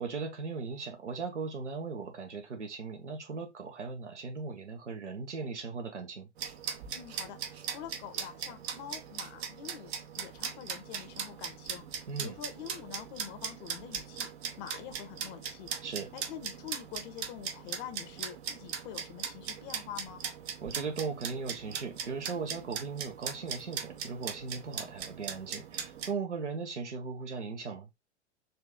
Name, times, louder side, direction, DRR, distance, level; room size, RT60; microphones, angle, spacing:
voice 1, 0.0-6.3 12.1-12.4 15.8-16.1 20.6-27.9, right 5 dB, 85° right, 1.2 m, -38 dB
sound 1, 6.4-26.1, right 7 dB, 65° right, 0.9 m, -40 dB
voice 2, 6.9-9.9 10.2-11.9 12.2-14.3 14.6-15.7 16.1-20.2, left 9 dB, 45° left, 1.1 m, -45 dB
4.3 x 2.7 x 3.5 m
hypercardioid pair, 95°, 34 cm